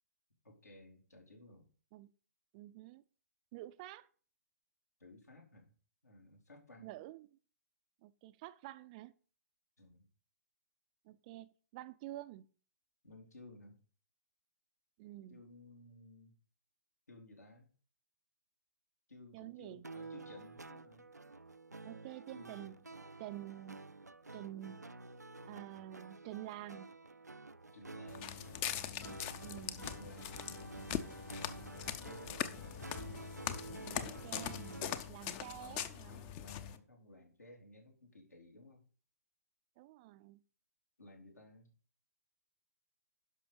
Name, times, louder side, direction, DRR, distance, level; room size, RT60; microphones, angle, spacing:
voice 1, 0.4-1.7 5.0-5.7 6.0-6.9 9.8-10.1 13.0-13.8 15.3-16.3 17.1-17.7 19.1-21.1 22.3-22.8 27.7-28.5 29.9-30.8 31.7-32.7 35.0-38.8 41.0-41.7, left 2 dB, 75° left, 3.9 m, -57 dB
voice 2, 2.5-3.0 3.5-4.1 6.8-7.4 8.0-9.1 11.0-12.5 15.0-15.4 19.3-19.8 21.9-22.7 23.2-23.8 24.3-25.0 25.4-26.9 29.4-29.8 33.9-36.3 39.8-40.4, right 14 dB, 30° right, 0.5 m, -49 dB
sound 1, 19.8-35.1, right 3 dB, 85° right, 0.5 m, -50 dB
Walk footsteps, 28.1-36.8, left 10 dB, 25° left, 0.7 m, -42 dB
11.0 x 6.0 x 5.1 m
figure-of-eight pair, 125°, 9 cm